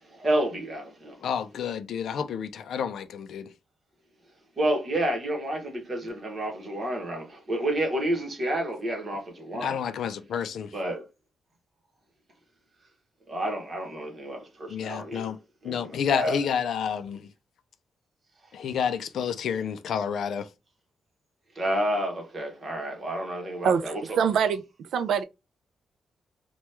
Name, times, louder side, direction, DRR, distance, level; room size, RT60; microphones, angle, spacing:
voice 1, 0.0-1.2 4.6-9.8 10.7-11.0 13.3-15.3 15.6-16.4 21.5-24.2, right 1 dB, 30° right, 1.0 m, -30 dB
voice 2, 1.2-3.5 9.5-10.7 14.7-15.4 15.6-17.3 18.5-20.5, left 7 dB, 65° left, 0.4 m, -30 dB
voice 3, 23.6-24.6 24.9-25.2, right 7 dB, 75° right, 0.3 m, -24 dB
2.9 x 2.2 x 3.2 m
wide cardioid pair, 170°, 0 cm